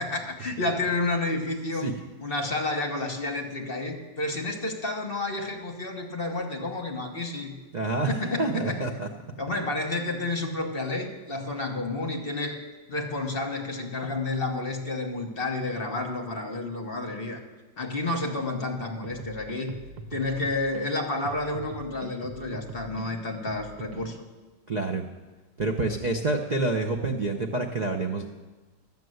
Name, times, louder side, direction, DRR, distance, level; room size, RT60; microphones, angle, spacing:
voice 1, 0.0-1.9 2.2-7.6 8.1-8.9 9.4-12.6 12.9-17.4 17.8-19.8 20.1-24.2, left 2 dB, 40° left, 3 dB, 1.1 m, -30 dB
voice 2, 7.7-8.1 8.4-9.1 24.7-25.0 25.6-28.2, right 2 dB, 55° right, 3 dB, 0.4 m, -27 dB
sound 1, 19.0-20.8 21.2-24.2, right 4 dB, 75° right, 1.3 m, -42 dB
12.0 x 7.5 x 7.8 m, 1.3 s
omnidirectional pair, 1.8 m